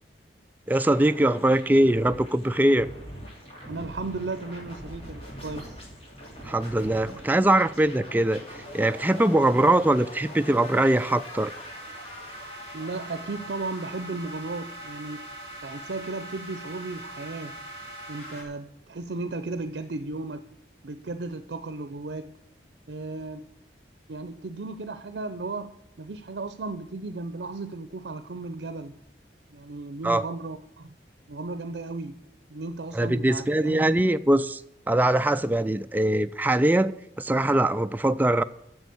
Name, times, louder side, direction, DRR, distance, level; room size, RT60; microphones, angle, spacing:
sound 1, 0.7-18.4, right 1 dB, 35° left, 2.8 m, -42 dB
voice 1, 0.7-2.9 6.4-8.4 8.7-11.5 30.0-30.2 33.0-34.6 34.9-38.4, right 1 dB, 10° right, 0.3 m, -22 dB
voice 2, 3.7-5.8 12.7-15.3 15.6-17.6 18.1-20.5 20.8-22.3 22.9-23.4 24.1-28.9 29.5-30.9 31.3-32.2 32.5-34.0, right 3 dB, 75° right, 0.6 m, -35 dB
8.0 x 7.0 x 8.4 m
head